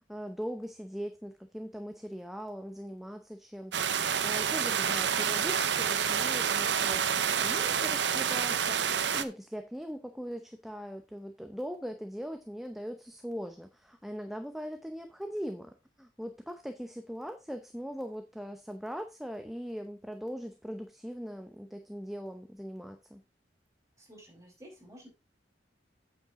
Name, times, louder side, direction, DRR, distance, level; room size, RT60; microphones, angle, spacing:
voice 1, 0.1-23.2, equal, ahead, 6 dB, 0.8 m, -40 dB
sound 1, 3.7-9.2, right 7 dB, 75° right, 0.8 m, -28 dB
voice 2, 24.0-25.1, equal, 20° right, 0 dB, 5.1 m, -52 dB
8.9 x 7.4 x 3.6 m, 0.26 s
head